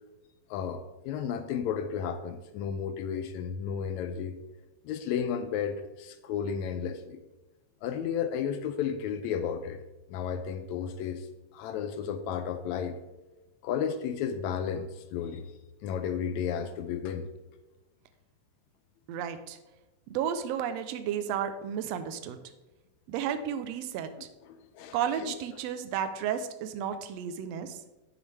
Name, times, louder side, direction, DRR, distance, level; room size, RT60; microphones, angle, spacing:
voice 1, 0.5-4.4 4.9-7.2 7.8-9.8 10.1-11.3 11.5-13.0 13.6-15.5 15.8-17.3 24.5-25.4, left 7 dB, 80° left, 9 dB, 1.7 m, -33 dB
voice 2, 19.1-19.6 20.1-22.4 23.1-24.3 24.9-27.8, right 8 dB, 90° right, 10 dB, 1.5 m, -33 dB
9.5 x 6.9 x 3.3 m, 1.1 s
omnidirectional pair, 3.6 m